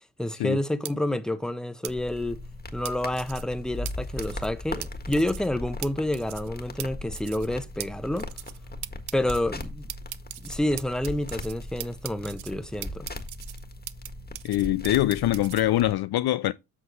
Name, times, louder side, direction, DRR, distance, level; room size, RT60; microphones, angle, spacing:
voice 1, 0.2-2.4 2.7-8.3 9.1-9.9 10.4-13.1, left 1 dB, ahead, 1.0 m, -29 dB
sound 1, 0.8-0.9 1.8-1.9 2.8-3.4 3.8-3.9 4.2-4.5 4.8-4.9 5.1-5.5 5.8-5.9 6.1-6.5 6.8-6.9 7.1-7.5 7.8-7.9 8.2-8.6 8.8-9.4 9.9-11.5 11.8-12.5 12.8-14.1 14.3-15.6, right 14 dB, 55° right, 0.7 m, -38 dB
sound 2, 1.9-15.9, left 1 dB, 20° left, 1.7 m, -39 dB
voice 2, 14.4-16.5, left 14 dB, 50° left, 0.5 m, -23 dB
7.8 x 6.1 x 3.1 m
hypercardioid pair, 55°, 48 cm